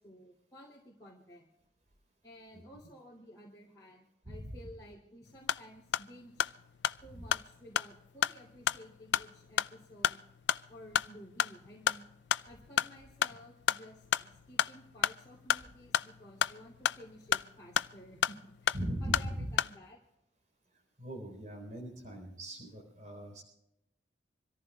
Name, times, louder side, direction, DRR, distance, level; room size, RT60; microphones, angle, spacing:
voice 1, 0.0-1.5 2.2-6.5 7.0-10.2 10.7-12.1 12.4-20.0, equal, 20° left, -5 dB, 2.9 m, -54 dB
voice 2, 4.2-4.6 7.1-7.3 18.7-19.5 21.0-23.4, equal, 40° right, 0 dB, 4.1 m, -40 dB
sound 1, 5.3-19.8, left 9 dB, 65° left, 0.4 m, -34 dB
26.5 x 14.5 x 2.4 m, 0.85 s
head